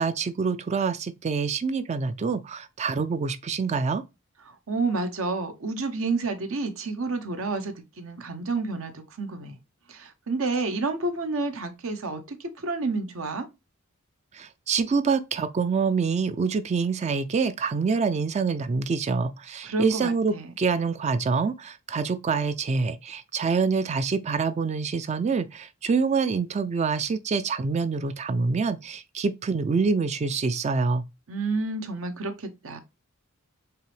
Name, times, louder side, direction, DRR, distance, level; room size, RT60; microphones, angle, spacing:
voice 1, 0.0-4.0 14.3-31.0, right 5 dB, 30° right, 0.3 m, -26 dB
voice 2, 4.5-9.6 9.9-13.5 19.6-20.5 31.3-32.8, right 3 dB, 70° right, 0.8 m, -30 dB
4.6 x 3.0 x 3.2 m
head